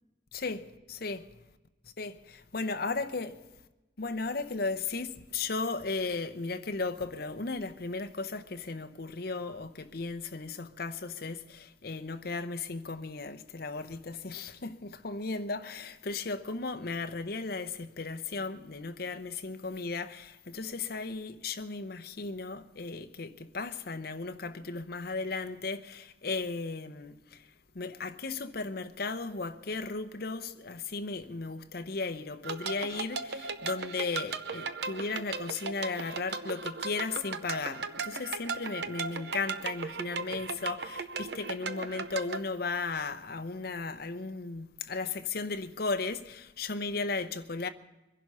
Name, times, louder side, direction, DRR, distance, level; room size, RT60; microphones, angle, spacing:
voice 1, 0.3-1.2 2.0-2.2 2.5-3.4 4.0-27.2 27.7-47.7, left 3 dB, 55° left, 0.8 m, -35 dB
sound 1, 32.4-42.4, right 4 dB, 60° right, 0.8 m, -37 dB
22.5 x 11.0 x 5.5 m
head